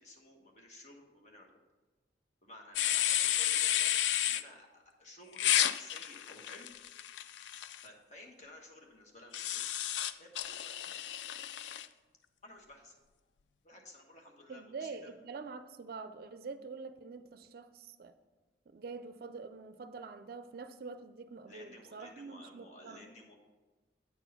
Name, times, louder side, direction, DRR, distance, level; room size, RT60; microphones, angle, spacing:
voice 1, 0.0-1.5 2.4-7.0 7.8-9.6 10.2-11.1 12.4-13.0 13.6-15.1 21.5-23.3, left 1 dB, 40° left, 1.3 m, -54 dB
sound 1, 2.8-4.4 5.4-7.8 9.3-11.9, left 11 dB, 80° left, 0.3 m, -32 dB
voice 2, 14.5-18.1 18.7-23.1, right 4 dB, 55° right, 0.4 m, -46 dB
8.7 x 4.6 x 5.4 m
head